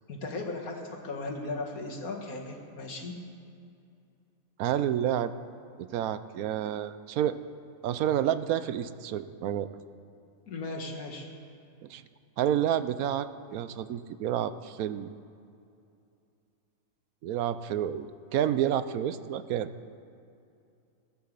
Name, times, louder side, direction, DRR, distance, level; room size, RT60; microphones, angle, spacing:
voice 1, 0.1-3.1 10.5-11.3, left 3 dB, 80° left, 1 dB, 2.2 m, -37 dB
voice 2, 4.6-5.3 5.8-7.4 7.8-9.7 11.8-12.0 12.4-15.1 17.2-19.7, right 10 dB, 80° right, 13 dB, 1.1 m, -29 dB
17.0 x 8.6 x 7.5 m, 2.5 s
omnidirectional pair, 1.5 m